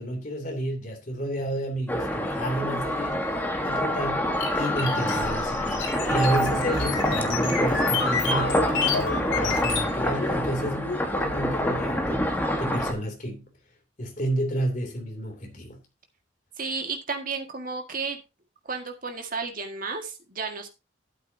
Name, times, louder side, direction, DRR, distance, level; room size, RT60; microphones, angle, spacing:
voice 1, 0.0-3.2 3.6-4.3 4.5-13.4 14.0-15.8, right 1 dB, 40° left, 2.9 m, -31 dB
sound 1, 1.9-12.9, equal, 10° left, 1.4 m, -26 dB
sound 2, 4.4-9.9, left 4 dB, 80° left, 3.3 m, -29 dB
voice 2, 16.6-18.2 18.6-20.7, right 4 dB, 45° right, 1.8 m, -32 dB
12.5 x 8.3 x 2.8 m
head